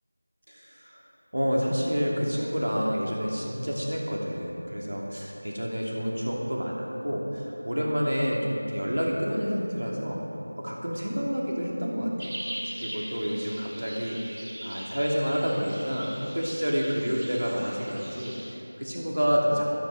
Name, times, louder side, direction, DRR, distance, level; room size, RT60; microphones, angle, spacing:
voice 1, 0.5-1.0 1.3-10.2 10.6-12.3 12.8-14.4 14.6-19.7, equal, 80° right, -3 dB, 2.8 m, -29 dB
sound 1, 12.2-18.5, right 1 dB, 40° right, 2.2 m, -40 dB
13.5 x 9.0 x 6.2 m, 2.9 s
figure-of-eight pair, 175°, 0 cm